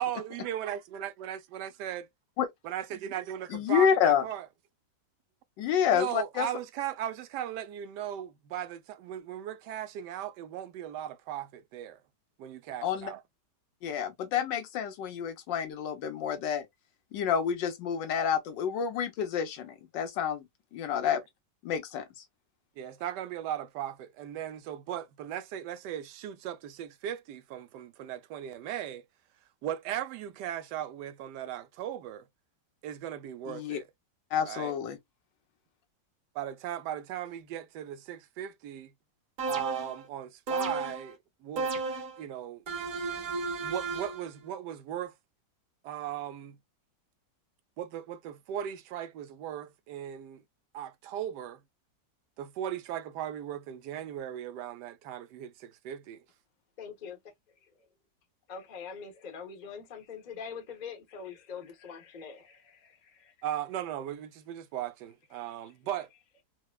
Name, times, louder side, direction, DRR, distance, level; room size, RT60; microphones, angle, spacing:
voice 1, 0.0-2.1 2.6-4.5 5.9-12.0 12.4-13.2 21.0-21.2 22.8-29.0 29.6-32.3 32.8-33.9 34.4-34.7 36.3-38.9 39.5-41.7 42.2-42.6 43.6-45.1 45.8-46.6 47.8-50.4 50.7-51.6 52.4-56.2 63.4-66.1, right 11 dB, 80° right, 1.2 m, -37 dB
voice 2, 3.5-4.2 5.6-6.5 12.8-13.1 13.8-16.7 17.1-21.2 21.6-22.0 33.5-33.8 34.3-35.0, left 8 dB, 85° left, 1.5 m, -29 dB
sound 1, 39.4-40.0 40.5-41.1 41.6-42.2 42.7-44.3, right 3 dB, 50° right, 1.8 m, -33 dB
voice 3, 56.8-57.2 58.5-63.3, left 6 dB, 35° left, 0.8 m, -43 dB
4.6 x 2.1 x 2.2 m
omnidirectional pair, 1.9 m